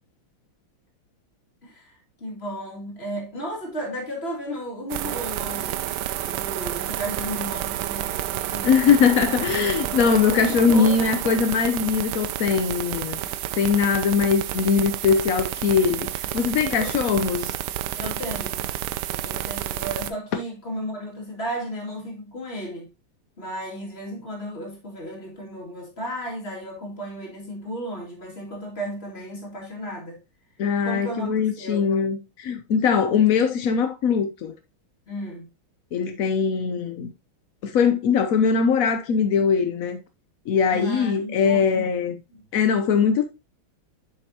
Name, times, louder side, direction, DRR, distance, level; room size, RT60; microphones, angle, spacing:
voice 1, 1.6-5.9 6.2-8.7 10.5-11.1 13.2-13.4 16.8-16.9 18.0-18.7 19.2-22.9 23.4-30.2 30.8-31.9 35.1-35.5 40.7-41.9 42.3-42.4, equal, 30° left, 2.6 m, -34 dB
sound 1, 4.9-20.1, right 13 dB, 80° right, 1.4 m, -30 dB
voice 2, 8.6-13.2 13.6-17.6 30.6-34.5 35.9-37.1 37.6-40.0 40.5-42.2 42.5-43.2, left 6 dB, 70° left, 0.8 m, -21 dB
7.8 x 6.6 x 2.8 m
omnidirectional pair, 2.4 m